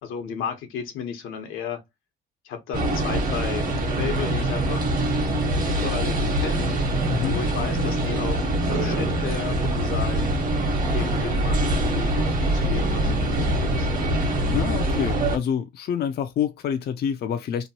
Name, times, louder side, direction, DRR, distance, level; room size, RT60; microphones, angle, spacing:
voice 1, 0.0-1.8 2.4-5.0 5.7-6.7 7.2-10.3 10.9-14.2, left 7 dB, 90° left, 0.9 m, -34 dB
sound 1, 2.7-15.4, right 1 dB, 45° right, 1.1 m, -24 dB
voice 2, 7.1-7.4 14.5-17.7, left 8 dB, 55° left, 0.4 m, -27 dB
2.9 x 2.2 x 2.8 m
cardioid pair, 90°, 20 cm